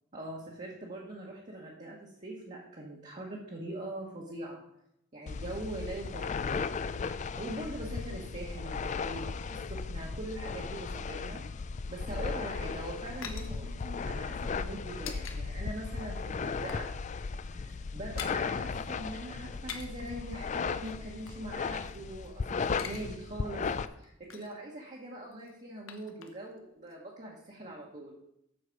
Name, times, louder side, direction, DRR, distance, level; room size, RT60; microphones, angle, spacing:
voice 1, 0.1-4.6 5.1-6.6 7.3-11.4 11.9-16.9 17.5-23.7 24.0-28.1, right 1 dB, 35° right, -4 dB, 1.3 m, -42 dB
sound 1, 5.3-23.9, left 5 dB, 35° left, 0.3 m, -36 dB
sound 2, 12.4-15.4 15.7-15.9 16.2-16.9 17.2-17.3 17.6-18.4 19.5-20.1 20.8-22.3 22.6-23.1 23.3-23.4 23.8-24.6 25.3-26.6 26.9-27.0, left 7 dB, 70° left, 1.0 m, -46 dB
7.9 x 6.5 x 5.2 m, 0.79 s
head